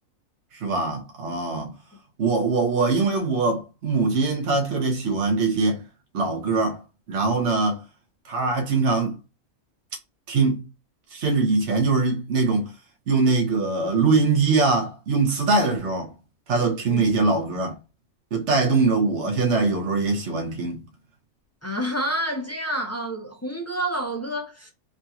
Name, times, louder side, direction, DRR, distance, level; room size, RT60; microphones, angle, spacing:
voice 1, 0.5-1.7 2.2-5.8 6.1-6.8 7.1-7.8 8.2-9.2 10.3-10.6 11.1-12.7 13.1-16.1 16.5-17.8 18.3-20.8, right 3 dB, 60° right, 1.3 m, -22 dB
voice 2, 21.6-24.7, right 1 dB, 20° left, 0.4 m, -28 dB
3.8 x 2.8 x 2.3 m
omnidirectional pair, 1.4 m